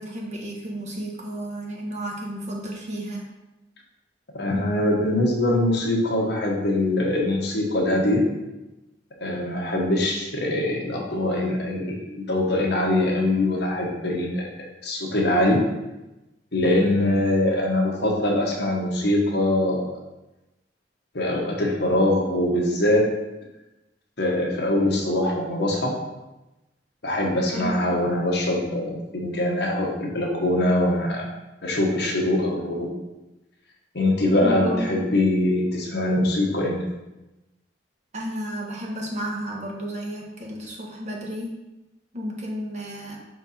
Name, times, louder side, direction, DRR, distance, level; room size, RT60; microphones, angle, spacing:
voice 1, 0.0-3.2 27.5-27.7 34.4-35.0 38.1-41.5 42.1-43.2, equal, 40° right, -2 dB, 1.3 m, -32 dB
voice 2, 4.3-8.2 9.2-14.5 14.8-15.6 16.5-19.9 21.1-23.1 24.2-25.9 27.0-31.3 31.6-32.9 33.9-36.8, left 1 dB, 65° left, -1 dB, 1.3 m, -23 dB
5.8 x 4.5 x 4.3 m, 1.0 s
head